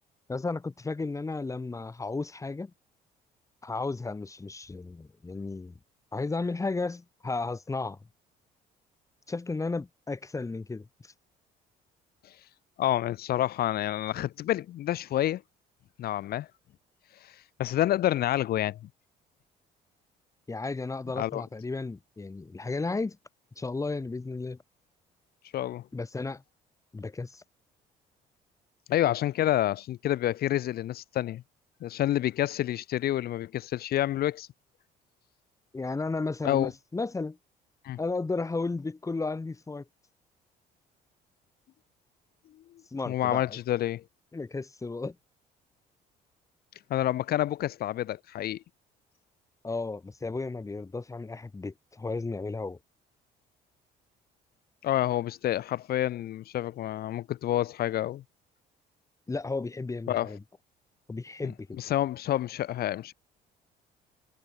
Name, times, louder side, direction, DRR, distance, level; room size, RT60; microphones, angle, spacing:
voice 1, 0.3-2.7 3.6-5.8 6.1-8.0 9.3-11.1 20.5-23.2 23.6-24.6 25.9-26.4 26.9-27.4 35.7-37.4 38.0-39.8 42.9-43.6 44.3-45.2 49.6-52.8 59.3-60.4 61.1-61.8, left 3 dB, 20° left, 4.2 m, -34 dB
voice 2, 12.8-15.4 16.0-16.5 17.2-17.3 17.6-18.9 21.2-21.4 25.5-25.9 28.9-31.4 31.8-34.5 36.4-36.7 37.8-38.0 42.7-44.0 46.9-48.6 54.8-58.2 60.1-60.3 61.4-61.5 61.8-63.1, left 13 dB, 65° left, 2.7 m, -28 dB
cardioid pair, 110°, 17 cm